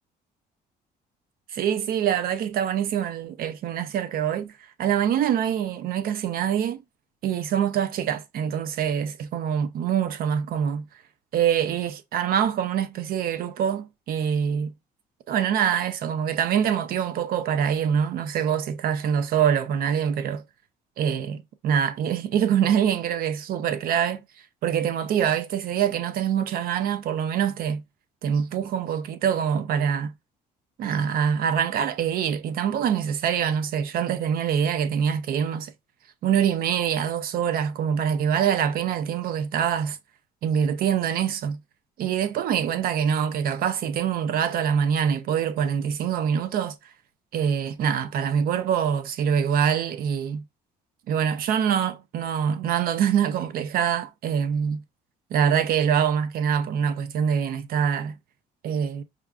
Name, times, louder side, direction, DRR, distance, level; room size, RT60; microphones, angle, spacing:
voice 1, 1.5-6.8 7.2-10.8 11.3-14.7 15.3-20.4 21.0-24.2 24.6-27.8 28.2-30.1 30.8-35.7 36.2-40.0 40.4-41.6 42.0-46.7 47.3-50.4 51.1-54.8 55.3-58.1 58.6-59.0, right 8 dB, 60° right, 0.5 m, -24 dB
4.9 x 2.4 x 2.2 m
cardioid pair, 110°, 17 cm